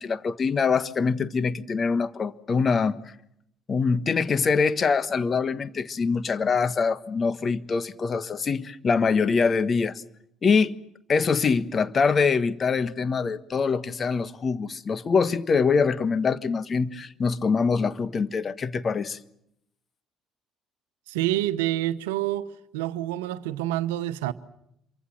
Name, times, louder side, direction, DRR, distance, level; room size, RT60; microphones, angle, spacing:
voice 1, 0.0-3.0 3.7-10.0 10.4-10.8 11.1-19.2, left 5 dB, 40° left, 1.4 m, -24 dB
voice 2, 21.1-24.3, right 14 dB, 80° right, 1.0 m, -27 dB
27.0 x 24.0 x 7.7 m
hypercardioid pair, 55°, 0 cm